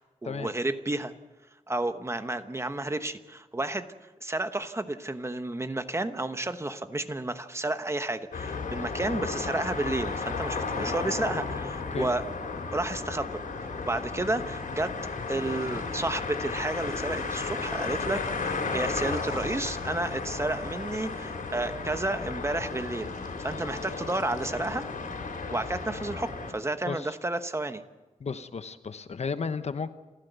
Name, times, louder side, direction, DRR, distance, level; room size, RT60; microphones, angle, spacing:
voice 1, 0.2-1.1 1.7-3.9 4.2-12.2 12.7-13.3 13.8-14.9 15.3-24.9 25.5-27.8, right 2 dB, 20° right, 9 dB, 1.0 m, -31 dB
sound 1, 8.3-26.5, left 4 dB, 75° left, 4.5 m, -34 dB
voice 2, 28.2-29.9, left 5 dB, 50° left, 11 dB, 1.0 m, -33 dB
28.0 x 15.0 x 8.1 m, 1.2 s
wide cardioid pair, 150°, 14 cm